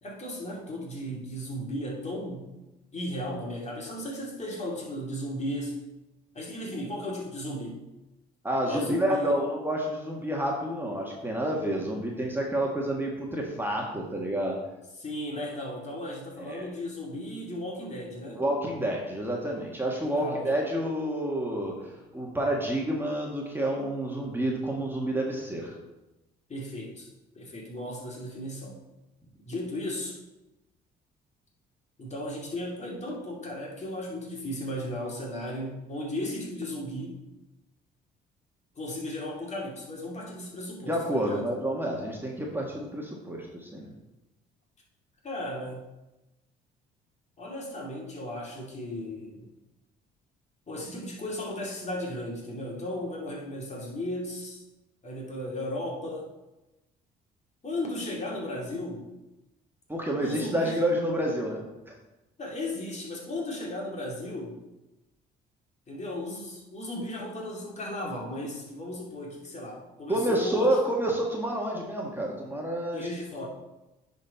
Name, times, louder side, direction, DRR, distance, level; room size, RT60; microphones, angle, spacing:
voice 1, 0.0-2.4 2.9-5.8 6.3-7.8 8.7-9.4 15.0-18.4 20.2-20.5 26.5-27.1 27.3-28.8 29.5-30.2 32.0-37.2 38.8-41.5 45.2-45.8 47.4-49.5 50.7-54.6 55.0-56.3 57.6-59.1 60.2-60.8 62.4-64.6 65.9-70.8 72.9-73.5, left 1 dB, 35° left, -2 dB, 2.5 m, -35 dB
voice 2, 8.4-14.6 16.4-16.7 18.3-25.8 40.9-43.9 59.9-61.9 70.1-73.1, right 1 dB, 10° right, -1 dB, 1.7 m, -29 dB
9.9 x 4.3 x 4.2 m, 1.0 s
supercardioid pair, 65°, 19 cm